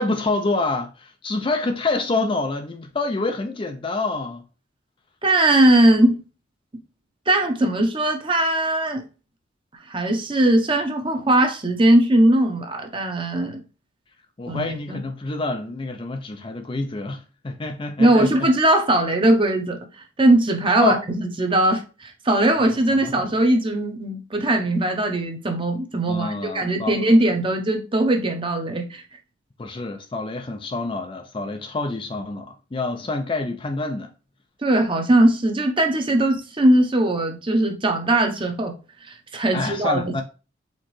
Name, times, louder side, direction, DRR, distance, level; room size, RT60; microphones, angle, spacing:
voice 1, 0.0-4.4 14.4-18.5 20.8-21.0 22.6-23.3 26.1-27.0 29.6-34.1 39.5-40.2, left 3 dB, 25° left, 0.4 m, -27 dB
voice 2, 5.2-6.2 7.3-9.0 9.9-13.6 14.5-14.6 14.9-15.0 18.0-19.8 20.2-29.0 34.6-38.7 39.1-40.2, right 1 dB, 25° right, 0.8 m, -20 dB
4.4 x 3.8 x 3.1 m
head